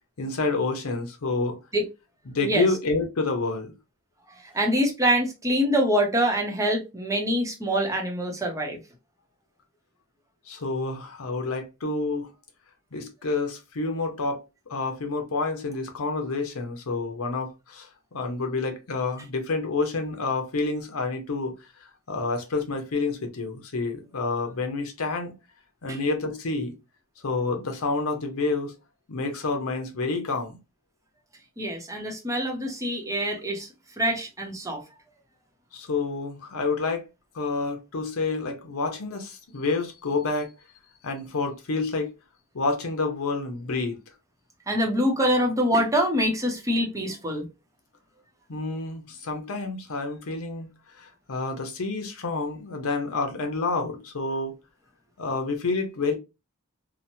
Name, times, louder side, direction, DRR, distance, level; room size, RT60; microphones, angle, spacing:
voice 1, 0.2-1.6 2.3-3.7 10.5-12.3 12.9-21.5 21.8-25.3 25.8-26.7 27.2-28.7 29.1-30.6 35.7-37.0 37.3-40.5 41.0-42.1 42.5-44.0 48.5-50.7 50.9-54.5 55.2-56.1, left 3 dB, 80° left, 0.7 m, -28 dB
voice 2, 4.5-8.8 25.9-26.0 31.6-33.7 34.0-34.8 44.7-47.4, equal, 15° right, 0.7 m, -25 dB
2.9 x 2.1 x 2.6 m
head